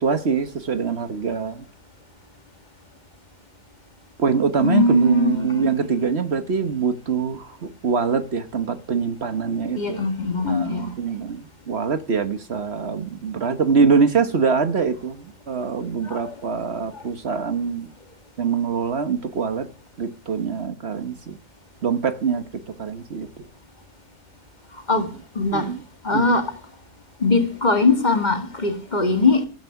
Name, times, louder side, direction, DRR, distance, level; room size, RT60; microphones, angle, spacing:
voice 1, 0.0-1.6 4.2-10.1 10.4-17.9 18.4-19.7 20.0-21.4 21.8-22.5 22.8-23.4 24.9-25.0 25.5-25.8 26.1-26.3, right 5 dB, 55° right, 1.3 m, -24 dB
voice 2, 4.6-5.9 9.7-10.9 16.0-16.3 16.9-17.0 24.9-25.1 25.4-25.7 26.0-26.5 27.2-29.5, left 3 dB, 35° left, 2.1 m, -21 dB
15.0 x 13.5 x 5.8 m
omnidirectional pair, 1.3 m